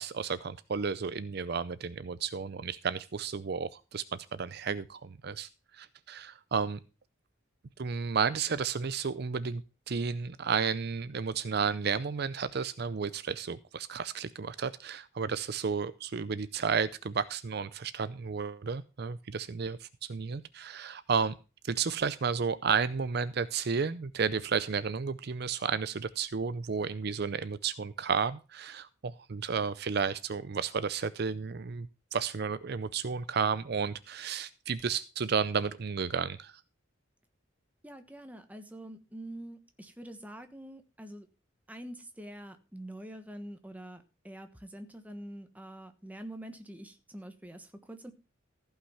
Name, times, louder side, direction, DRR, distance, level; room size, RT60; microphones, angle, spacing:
voice 1, 0.0-5.5 5.7-6.8 7.8-21.3 21.6-36.6, right 5 dB, 55° right, 15 dB, 0.5 m, -32 dB
voice 2, 37.8-41.3 41.7-48.1, right 1 dB, 10° right, 7 dB, 1.2 m, -45 dB
15.0 x 5.7 x 5.6 m, 0.32 s
head